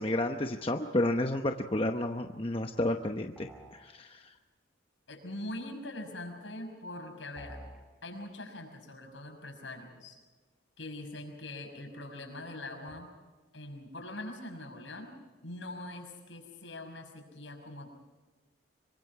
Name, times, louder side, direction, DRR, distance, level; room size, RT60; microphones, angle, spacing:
voice 1, 0.0-4.2, left 1 dB, 30° left, 4 dB, 0.9 m, -31 dB
sound 1, 3.4-3.8 7.4-7.8, right 1 dB, 5° right, 7.2 m, -48 dB
voice 2, 5.1-7.6 8.0-10.2 10.8-13.1 13.5-15.1 15.4-17.9, left 1 dB, 70° left, 3 dB, 6.2 m, -43 dB
26.0 x 23.5 x 4.8 m, 1.3 s
head